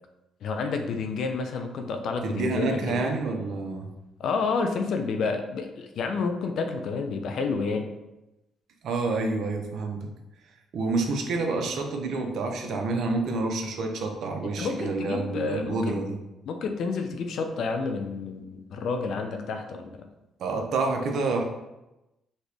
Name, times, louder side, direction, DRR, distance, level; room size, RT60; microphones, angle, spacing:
voice 1, 0.4-3.1 4.2-7.9 14.4-15.9 16.5-20.1, left 4 dB, 70° left, 5 dB, 0.6 m, -30 dB
voice 2, 2.2-3.9 8.8-10.1 10.7-16.2 20.4-21.4, right 3 dB, 65° right, 3 dB, 0.7 m, -28 dB
4.3 x 3.0 x 3.4 m, 0.95 s
cardioid pair, 80°, 0 cm